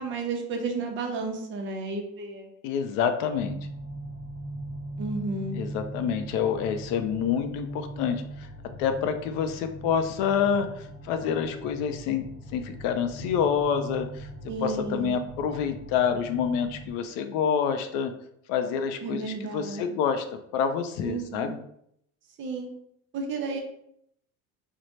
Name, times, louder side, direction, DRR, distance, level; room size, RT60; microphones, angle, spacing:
voice 1, 0.0-2.5 5.0-5.6 14.5-15.1 19.0-19.8 21.0-21.5 22.4-22.7 23.1-23.6, right 3 dB, 35° right, 3 dB, 0.6 m, -32 dB
voice 2, 2.6-3.6 5.5-8.5 8.8-14.3 14.6-18.1 18.5-20.2 20.5-21.6, left 7 dB, 70° left, 8 dB, 0.5 m, -27 dB
sound 1, 3.3-16.9, right 1 dB, 15° left, 0.6 m, -40 dB
4.1 x 2.1 x 3.1 m, 0.72 s
cardioid pair, 145°, 33 cm